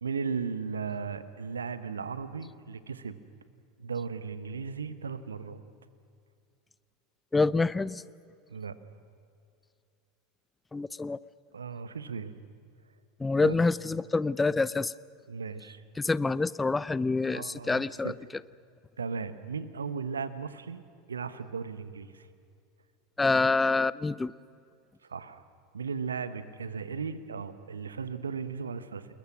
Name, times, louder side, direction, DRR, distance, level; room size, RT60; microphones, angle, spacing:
voice 1, 0.0-3.2 3.8-5.6 8.5-8.8 11.5-12.3 13.4-13.6 15.3-15.8 17.2-18.1 19.0-20.8 21.1-22.3 25.1-25.4 25.7-29.1, right 5 dB, 80° right, 13 dB, 1.2 m, -36 dB
voice 2, 7.3-8.0 10.7-11.2 13.2-14.9 16.0-18.1 23.2-24.3, left 3 dB, 15° left, 20 dB, 0.6 m, -26 dB
30.0 x 21.0 x 6.2 m, 2.4 s
figure-of-eight pair, 80°, 0 cm